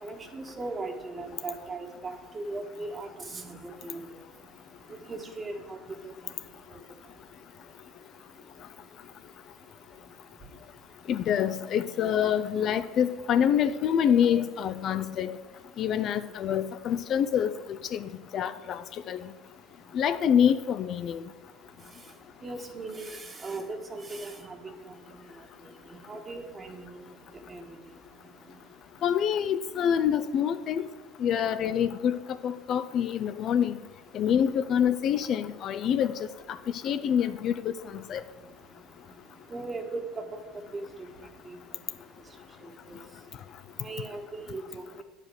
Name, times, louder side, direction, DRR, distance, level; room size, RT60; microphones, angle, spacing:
voice 1, 0.0-4.0 4.9-5.8 6.0-6.1 22.4-24.9 26.1-27.0 27.5-27.6 39.5-40.2 40.7-40.9 41.4-41.6 42.9-43.0 43.8-45.0, right 3 dB, 25° right, 4 dB, 1.4 m, -38 dB
voice 2, 11.1-15.4 15.8-19.3 19.9-21.2 29.0-30.9 31.2-33.8 34.1-36.2 36.5-36.6 36.8-38.2, left 8 dB, 50° left, 12 dB, 0.4 m, -26 dB
9.1 x 4.9 x 7.7 m, 1.3 s
supercardioid pair, 105°, 0 cm